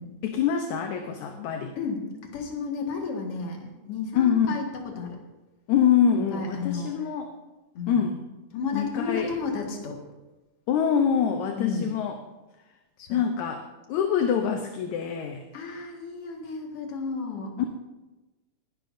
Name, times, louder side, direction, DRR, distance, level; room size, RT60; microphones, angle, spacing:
voice 1, 0.2-1.7 4.1-4.5 5.7-7.3 7.9-8.2 8.7-9.3 10.7-12.2 13.1-13.6 13.9-15.4 17.6-17.7, left 8 dB, 75° left, 5 dB, 2.0 m, -25 dB
voice 2, 1.8-5.2 6.3-6.9 7.7-8.0 8.5-10.0 11.6-11.9 13.0-13.3 15.5-17.5, left 4 dB, 50° left, 1 dB, 2.5 m, -32 dB
19.5 x 11.5 x 2.6 m, 1.1 s
omnidirectional pair, 3.7 m